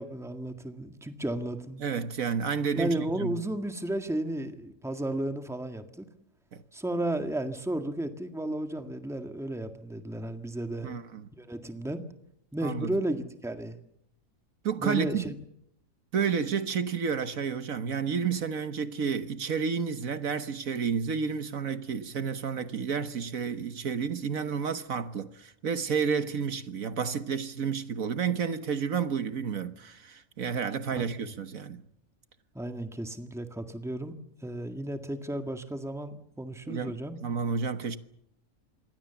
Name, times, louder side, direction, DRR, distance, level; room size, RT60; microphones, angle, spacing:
voice 1, 0.0-1.8 2.7-6.1 6.7-10.9 11.4-12.0 12.5-13.8 14.7-15.3 30.9-31.0 32.5-34.1 34.4-37.2, right 1 dB, ahead, 1.7 m, -33 dB
voice 2, 1.8-3.4 6.5-6.6 10.8-11.2 12.6-12.9 14.6-15.2 16.1-31.8 36.7-37.0 37.2-38.0, right 6 dB, 70° right, 1.6 m, -31 dB
27.0 x 22.5 x 7.0 m
omnidirectional pair, 1.5 m